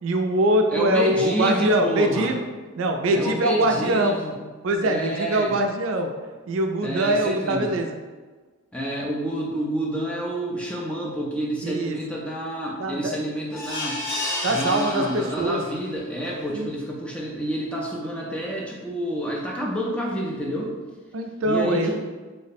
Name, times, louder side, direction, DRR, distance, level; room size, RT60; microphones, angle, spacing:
voice 1, 0.0-2.4 2.8-4.2 4.6-6.1 6.5-8.0 11.6-12.0 12.8-13.1 14.4-15.6 16.5-16.7 21.1-21.9, right 1 dB, 70° right, 4 dB, 0.3 m, -23 dB
voice 2, 0.7-2.3 3.1-4.4 4.8-5.6 6.8-7.7 8.7-14.0 14.5-20.7 21.4-22.0, equal, 5° left, -3 dB, 0.4 m, -29 dB
sound 1, 13.5-15.8 16.2-16.3 16.7-16.8, left 1 dB, 65° left, 1.2 m, -31 dB
3.1 x 2.0 x 4.1 m, 1.4 s
head